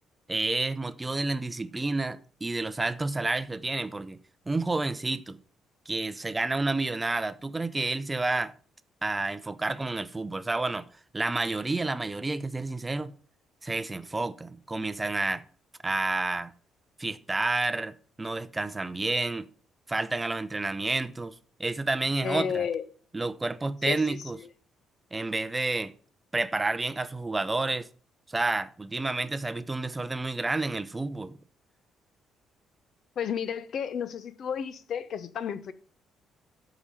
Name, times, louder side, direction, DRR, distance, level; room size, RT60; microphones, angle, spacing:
voice 1, 0.3-4.2 4.5-5.4 5.9-8.5 9.0-10.9 11.1-13.1 13.6-15.4 15.8-16.5 17.0-19.5 19.9-21.3 21.6-22.7 23.1-24.4 25.1-25.9 26.3-27.9 28.3-31.4, right 2 dB, 15° right, 0.6 m, -30 dB
voice 2, 22.2-22.8 23.9-24.2 33.2-35.7, left 7 dB, 55° left, 0.8 m, -32 dB
13.0 x 5.1 x 5.6 m
cardioid pair, 135°, 0 cm